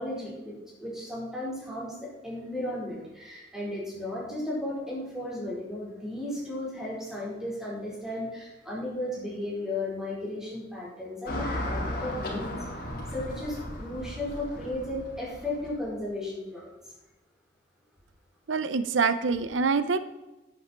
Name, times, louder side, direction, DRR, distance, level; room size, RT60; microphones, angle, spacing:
voice 1, 0.0-12.5 13.1-16.8, left 1 dB, 5° right, -5 dB, 4.8 m, -35 dB
Car passing by / Traffic noise roadway noise, 11.3-15.9, left 1 dB, 55° left, 4.5 m, -35 dB
voice 2, 18.5-20.0, right 5 dB, 85° right, 12 dB, 0.7 m, -25 dB
11.0 x 10.5 x 4.5 m, 1.1 s
head